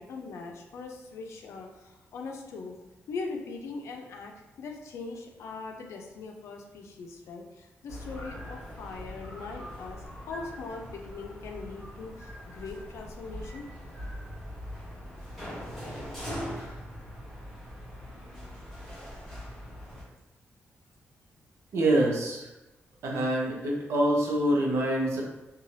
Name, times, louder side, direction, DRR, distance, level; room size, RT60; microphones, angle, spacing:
voice 1, 0.0-2.8 3.1-13.7, left 4 dB, 80° left, 2 dB, 0.4 m, -41 dB
sound 1, 7.9-20.0, equal, 5° left, 1.2 m, -41 dB
voice 2, 21.7-22.5 23.0-25.2, right 1 dB, 75° right, -1 dB, 0.6 m, -25 dB
3.1 x 2.3 x 2.6 m, 0.98 s
wide cardioid pair, 165°, 5 cm